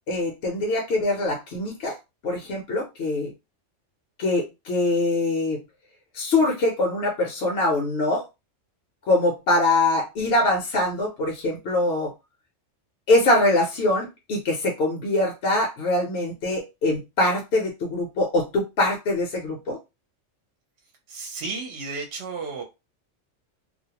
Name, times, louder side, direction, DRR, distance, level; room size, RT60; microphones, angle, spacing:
voice 1, 0.1-1.9 2.2-3.3 4.2-5.6 6.1-8.2 9.1-12.1 13.1-19.8, left 2 dB, 60° left, -1 dB, 0.9 m, -23 dB
voice 2, 21.1-22.6, right 4 dB, 65° right, 2 dB, 0.8 m, -33 dB
2.4 x 2.0 x 2.8 m, 0.24 s
omnidirectional pair, 1.3 m